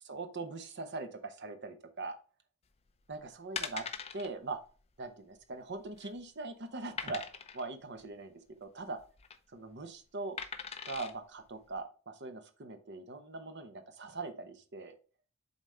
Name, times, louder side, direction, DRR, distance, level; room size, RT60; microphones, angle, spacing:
voice 1, 0.0-2.2 3.1-3.9 4.1-4.6 5.0-8.3 8.6-9.0 9.5-10.4 10.8-15.0, right 3 dB, 55° right, 8 dB, 0.9 m, -41 dB
sound 1, 2.9-3.1 3.6-4.3 4.6-4.8 5.0-5.1 5.7-6.2 7.0-7.7 9.0-9.4 10.4-11.1 11.7-11.8, left 6 dB, 30° left, 0.6 m, -41 dB
7.3 x 4.0 x 3.3 m, 0.37 s
head